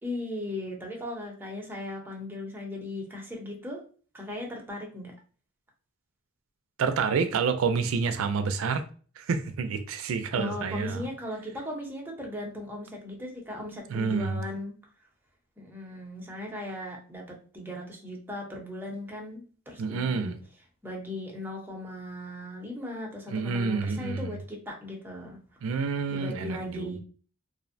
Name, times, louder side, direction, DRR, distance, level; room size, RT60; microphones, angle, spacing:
voice 1, 0.0-3.8 4.1-5.1 10.3-14.8 15.6-20.3 20.8-25.4 26.1-27.0, left 1 dB, 10° right, 0.6 m, -37 dB
voice 2, 6.8-8.9 9.2-11.0 13.9-14.4 19.8-20.4 23.3-24.4 25.6-27.0, right 5 dB, 85° right, 0.4 m, -28 dB
2.5 x 2.1 x 2.5 m
head